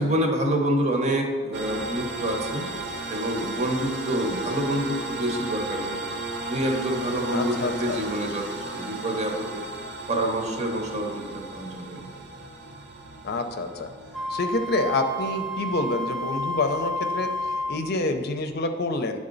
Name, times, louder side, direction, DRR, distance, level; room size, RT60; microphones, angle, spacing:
voice 1, 0.0-2.7 3.1-6.0 6.4-9.6 10.1-12.0, right 1 dB, 35° right, 2 dB, 0.9 m, -27 dB
sound 1, 1.5-18.6, right 2 dB, 60° right, 0.7 m, -36 dB
voice 2, 7.3-8.0 13.2-13.9 14.3-17.3 17.7-19.2, left 2 dB, 55° left, 6 dB, 0.5 m, -27 dB
Wind instrument woodwind instrument, 14.1-17.9, equal, ahead, 0.4 m, -30 dB
10.0 x 3.6 x 3.9 m, 1.5 s
head